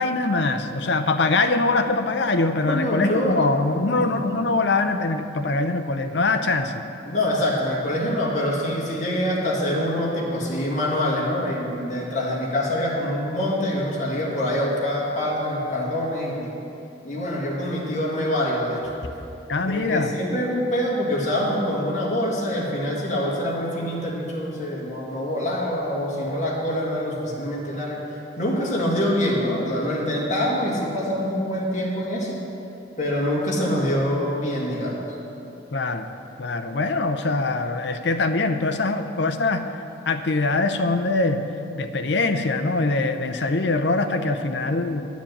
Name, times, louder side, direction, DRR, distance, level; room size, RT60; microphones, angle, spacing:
voice 1, 0.0-6.7 19.5-20.1 35.7-36.1 36.4-39.6 40.1-41.4 41.7-45.1, left 3 dB, 65° left, 8 dB, 0.6 m, -23 dB
voice 2, 2.7-3.3 3.9-4.2 7.0-16.5 17.0-18.8 19.7-32.4 33.0-35.0, left 1 dB, 40° left, -4 dB, 2.1 m, -25 dB
10.5 x 7.3 x 7.2 m, 2.8 s
head